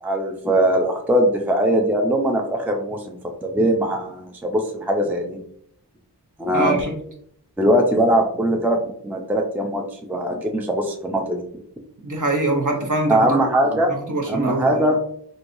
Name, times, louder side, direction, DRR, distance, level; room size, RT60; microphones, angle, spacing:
voice 1, 0.0-5.4 6.4-6.8 7.6-8.8 9.0-9.8 10.1-11.4 13.1-13.9 14.3-15.0, right 1 dB, 5° right, 2 dB, 0.4 m, -21 dB
voice 2, 6.5-7.0 12.0-13.4 13.7-13.8 14.1-14.8, right 2 dB, 45° right, 1 dB, 0.9 m, -23 dB
3.1 x 2.7 x 2.6 m, 0.66 s
cardioid pair, 40°, 41 cm